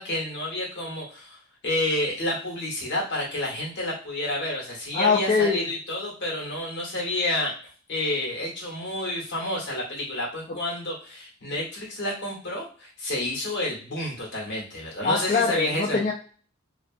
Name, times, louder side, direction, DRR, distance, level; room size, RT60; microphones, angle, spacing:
voice 1, 0.0-1.4 1.6-7.5 7.9-16.0, left 1 dB, 60° left, -3 dB, 1.1 m, -29 dB
voice 2, 4.9-5.7 15.0-16.1, left 4 dB, 40° left, -2 dB, 0.4 m, -23 dB
2.6 x 2.3 x 2.4 m, 0.41 s
head